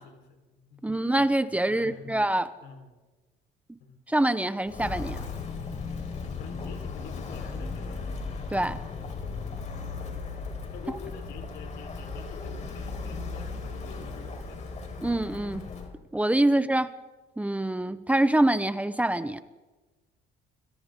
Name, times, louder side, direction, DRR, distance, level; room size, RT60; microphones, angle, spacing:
voice 1, 0.0-0.8 1.7-2.2 2.6-2.9 3.8-3.9 6.3-8.0 10.7-14.7 16.5-16.6, left 6 dB, 85° left, 4 dB, 4.5 m, -47 dB
voice 2, 0.8-2.5 4.1-5.2 8.5-8.8 15.0-15.7 16.1-16.9 17.4-19.4, right 1 dB, 10° right, 12 dB, 0.9 m, -25 dB
Walk footsteps, 4.6-15.9, left 4 dB, 45° left, 4.8 m, -36 dB
30.0 x 25.5 x 3.9 m, 1.2 s
cardioid pair, 110°, 17 cm